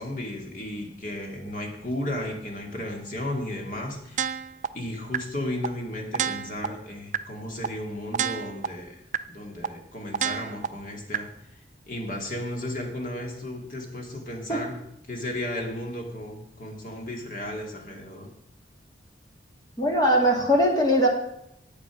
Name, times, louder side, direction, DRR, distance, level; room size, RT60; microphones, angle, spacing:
voice 1, 0.0-4.3 4.7-9.0 9.3-11.6 11.9-14.8 15.1-18.3, left 1 dB, 45° left, 2 dB, 2.2 m, -34 dB
sound 1, 4.2-4.7 5.1-5.2 5.6-5.7 6.1-6.7 7.1-7.2 7.6-7.7 8.1-8.7 9.1-9.2 9.6-9.7 10.1-10.7 11.1-11.2, right 8 dB, 40° right, 0.4 m, -27 dB
voice 2, 19.8-21.1, equal, 20° left, 0 dB, 2.4 m, -20 dB
11.0 x 8.3 x 5.8 m, 0.76 s
head